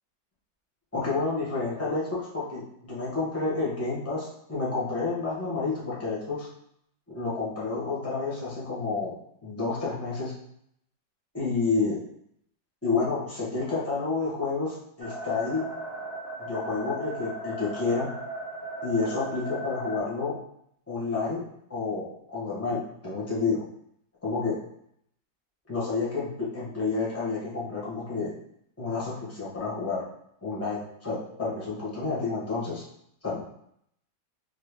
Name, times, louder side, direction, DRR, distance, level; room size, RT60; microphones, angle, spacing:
voice 1, 0.9-6.5 7.1-9.1 9.4-10.3 11.3-12.0 12.8-15.7 16.4-18.1 18.8-20.3 20.9-21.4 21.7-23.6 24.2-24.6 25.7-28.3 28.8-30.0 30.4-32.8 33.2-33.4, left 4 dB, 15° left, -7 dB, 0.5 m, -29 dB
sound 1, 15.0-20.0, right 1 dB, 50° right, 0.5 m, -37 dB
3.5 x 2.0 x 3.4 m, 0.71 s
omnidirectional pair, 2.1 m